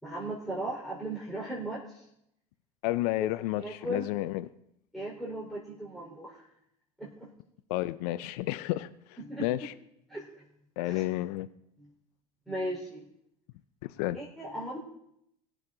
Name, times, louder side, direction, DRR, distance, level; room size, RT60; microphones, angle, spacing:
voice 1, 0.0-2.0 3.2-3.3 3.6-4.1 4.9-6.5 7.0-7.3 9.2-9.5 10.1-10.4 10.8-11.0 11.8-11.9 12.5-13.1 14.1-14.8, right 1 dB, ahead, 4.1 m, -37 dB
voice 2, 2.8-4.5 7.7-9.7 10.8-11.5 13.8-14.2, left 16 dB, 65° left, 0.6 m, -31 dB
21.0 x 7.5 x 3.8 m
hypercardioid pair, 85°, 21 cm